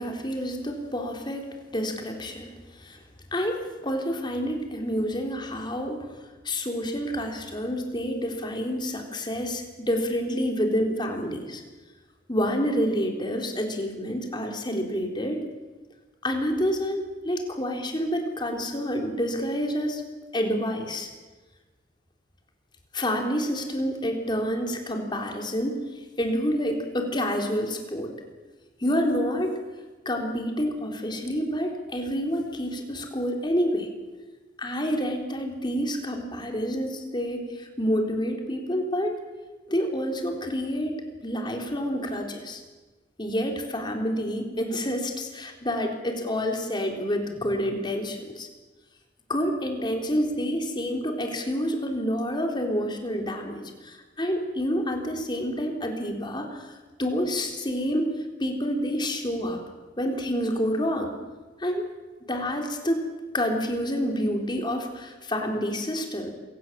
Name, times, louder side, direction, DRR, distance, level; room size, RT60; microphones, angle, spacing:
voice 1, 0.0-3.0 3.3-11.6 12.3-15.4 16.2-20.0 20.3-21.1 22.9-25.8 26.2-28.1 28.8-29.5 30.1-33.9 34.6-39.2 39.7-42.6 43.2-48.5 49.3-56.7 57.0-58.1 58.4-59.6 60.0-61.1 61.6-61.9 62.3-63.0 63.3-66.3, equal, 25° left, 3 dB, 3.6 m, -28 dB
27.0 x 17.0 x 7.5 m, 1.3 s
head